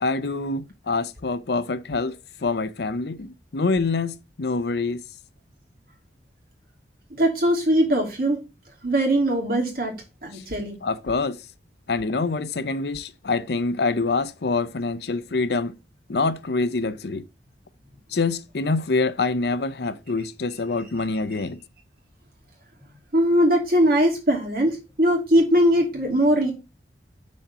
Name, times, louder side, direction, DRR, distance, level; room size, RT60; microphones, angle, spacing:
voice 1, 0.0-2.2 2.4-3.3 3.5-5.0 10.3-10.4 10.8-11.4 11.9-15.8 16.1-17.2 18.1-21.6, left 3 dB, 65° left, 0.6 m, -25 dB
voice 2, 7.2-8.4 8.8-9.9 10.2-10.7 23.1-26.5, equal, 55° right, 2.7 m, -20 dB
6.3 x 4.2 x 5.7 m
head